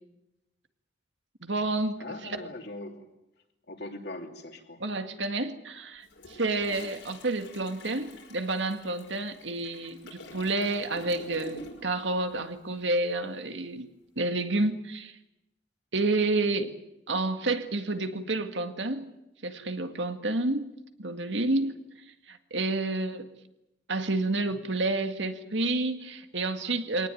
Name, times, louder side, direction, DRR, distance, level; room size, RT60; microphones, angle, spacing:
voice 1, 1.4-2.4 4.8-13.9 14.2-15.1 15.9-16.7 17.1-19.1 19.4-20.7 21.0-21.7 22.3-23.3 23.9-27.1, right 2 dB, 75° right, 7 dB, 2.0 m, -29 dB
voice 2, 2.0-3.1 3.7-4.8, left 2 dB, 60° left, 4 dB, 3.0 m, -40 dB
Toilet flush, 6.0-12.0 12.3-12.5, left 1 dB, 85° left, 5.2 m, -47 dB
23.5 x 18.5 x 9.2 m, 0.93 s
head